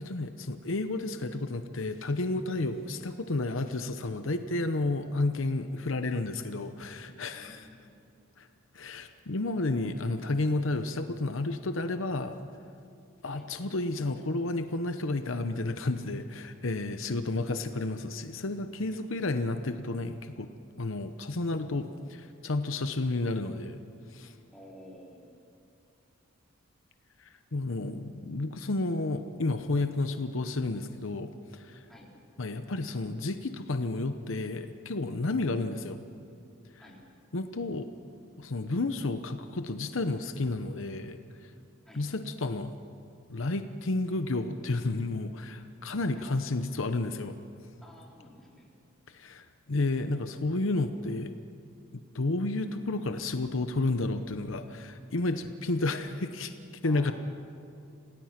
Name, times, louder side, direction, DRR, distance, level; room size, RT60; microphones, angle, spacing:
voice 1, 0.0-7.7 8.4-8.5 8.7-12.4 13.2-20.5 20.8-23.8 24.1-24.3 27.2-31.8 32.4-36.0 37.3-37.9 38.4-41.5 41.9-42.7 43.3-47.4 49.1-51.4 51.9-56.5 56.8-57.1, left 2 dB, 65° left, 8 dB, 0.9 m, -31 dB
voice 2, 7.3-8.0 13.3-13.5 17.0-17.5 24.5-25.3 31.9-32.1 36.8-37.0 41.8-42.1 46.1-46.3 47.8-48.7 56.8-57.1, left 1 dB, ahead, -4 dB, 4.1 m, -51 dB
28.0 x 18.0 x 6.0 m, 2.6 s
head